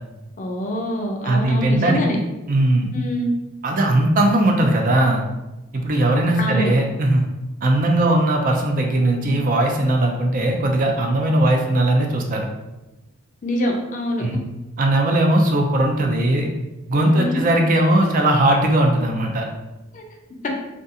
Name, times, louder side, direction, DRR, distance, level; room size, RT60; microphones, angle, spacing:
voice 1, 0.4-2.2 2.9-3.3 6.4-6.7 13.4-14.4 17.0-17.4 19.9-20.0, equal, 35° left, 1 dB, 0.4 m, -25 dB
voice 2, 1.2-2.2 2.5-2.9 3.6-5.2 5.7-7.2 7.6-12.5 14.2-14.4 14.8-16.5 16.9-19.5, right 1 dB, 40° right, 2 dB, 0.4 m, -19 dB
2.4 x 2.3 x 2.7 m, 1.0 s
head